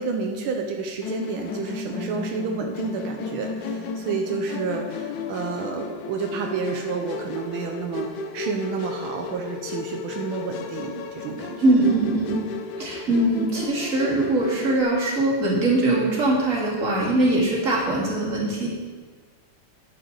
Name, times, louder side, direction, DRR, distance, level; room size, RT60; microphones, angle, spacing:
voice 1, 0.0-8.1 8.3-11.6, right 5 dB, 85° right, 3 dB, 1.7 m, -30 dB
Musical instrument, 1.0-14.8, left 4 dB, 70° left, 1.4 m, -34 dB
voice 2, 11.6-12.4 12.8-18.7, right 2 dB, 40° right, -5 dB, 2.8 m, -22 dB
11.0 x 8.1 x 3.9 m, 1.5 s
omnidirectional pair, 2.2 m